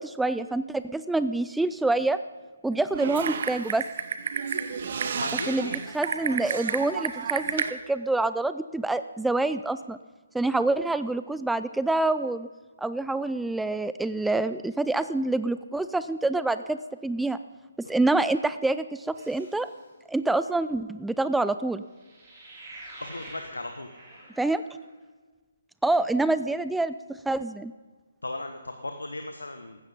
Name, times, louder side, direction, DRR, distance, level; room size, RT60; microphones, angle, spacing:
voice 1, 0.0-2.2 2.6-3.8 5.5-5.7 5.9-10.0 10.3-12.5 12.8-17.4 17.8-19.7 20.1-21.8 24.4-24.6 25.8-27.7, right 2 dB, 5° right, 13 dB, 0.3 m, -26 dB
Typing, 2.9-7.7, right 6 dB, 45° right, 1.0 m, -31 dB
voice 2, 4.8-5.8 23.0-23.9 28.2-29.8, left 2 dB, 80° left, 6 dB, 1.2 m, -36 dB
sound 1, 19.1-19.8 21.9-24.8, right 1 dB, 20° right, 5.6 m, -47 dB
16.0 x 13.0 x 5.4 m, 1.3 s
figure-of-eight pair, 140°, 0 cm